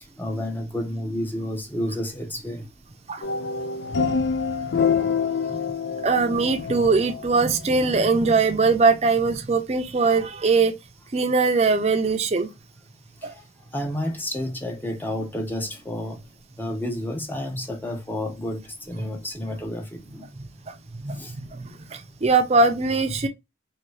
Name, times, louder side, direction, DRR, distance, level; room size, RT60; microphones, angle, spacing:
voice 1, 0.2-2.7 13.2-13.4 13.7-16.2 16.6-20.3 21.1-21.3, left 1 dB, 10° left, 0.6 m, -30 dB
sound 1, 3.2-7.5, left 5 dB, 75° left, 0.4 m, -26 dB
voice 2, 6.0-10.7 11.1-12.5 13.2-13.3 21.0-21.5 21.9-23.3, right 4 dB, 35° right, 0.5 m, -21 dB
2.7 x 2.7 x 3.1 m
head